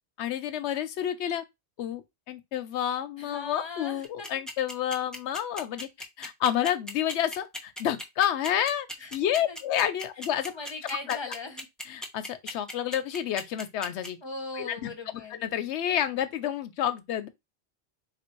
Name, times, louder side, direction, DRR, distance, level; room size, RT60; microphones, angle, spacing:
voice 1, 0.2-1.4 1.8-5.9 6.2-10.5 11.1-11.2 11.9-14.2 14.6-14.9 15.3-17.3, left 10 dB, 85° left, 0.9 m, -29 dB
voice 2, 3.2-4.4 9.0-9.6 10.5-11.7 14.2-15.4, left 3 dB, 25° left, 0.8 m, -39 dB
sound 1, 4.0-14.1, equal, ahead, 0.5 m, -37 dB
3.5 x 2.5 x 4.4 m
omnidirectional pair, 1.1 m